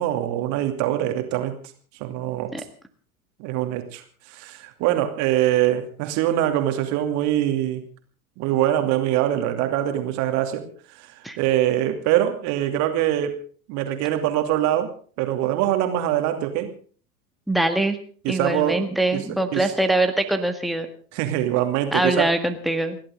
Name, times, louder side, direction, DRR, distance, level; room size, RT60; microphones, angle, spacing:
voice 1, 0.0-1.6 2.0-2.5 3.4-7.8 8.4-10.7 11.0-11.1 11.4-13.4 13.7-14.9 15.2-16.7 18.2-18.9 19.1-19.7 21.1-22.3, right 12 dB, 40° right, 6 dB, 2.7 m, -23 dB
voice 2, 17.5-18.0 18.3-20.9 21.9-23.0, right 1 dB, ahead, 6 dB, 1.8 m, -23 dB
29.5 x 12.0 x 3.9 m, 0.43 s
figure-of-eight pair, 90°, 43 cm